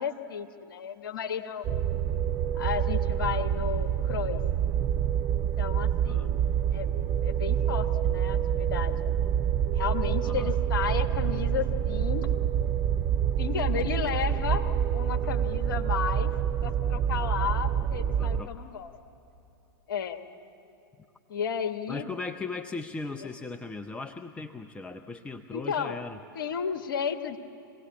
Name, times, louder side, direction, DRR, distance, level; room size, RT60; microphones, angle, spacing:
voice 1, 0.0-1.6 2.5-4.4 5.6-6.4 6.7-6.9 7.2-9.0 9.7-12.3 13.4-18.9 19.9-20.2 21.3-22.1 23.2-23.3 25.5-26.0 26.3-27.4, left 7 dB, 65° left, 7 dB, 1.3 m, -33 dB
sound 1, 1.6-18.4, right 9 dB, 35° right, 0.6 m, -27 dB
voice 2, 18.2-18.5 21.9-26.2, left 3 dB, 10° left, 7 dB, 0.6 m, -38 dB
25.5 x 18.0 x 8.5 m, 2.9 s
figure-of-eight pair, 100°, 12 cm